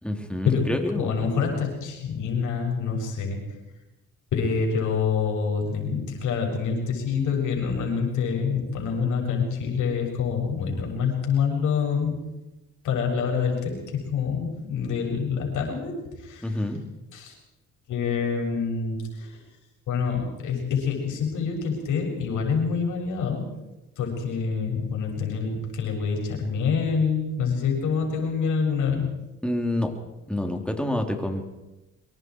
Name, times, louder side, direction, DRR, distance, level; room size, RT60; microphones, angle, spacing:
voice 1, 0.0-1.1 16.4-16.8 29.4-29.9 30.3-31.4, left 1 dB, 5° left, 3 dB, 3.5 m, -27 dB
voice 2, 0.9-3.4 4.3-12.2 12.8-16.5 17.1-17.4 17.9-19.4 19.9-23.5 24.0-29.1, left 6 dB, 80° left, 1 dB, 6.9 m, -26 dB
24.5 x 23.0 x 4.8 m, 1.0 s
cardioid pair, 90°, 30 cm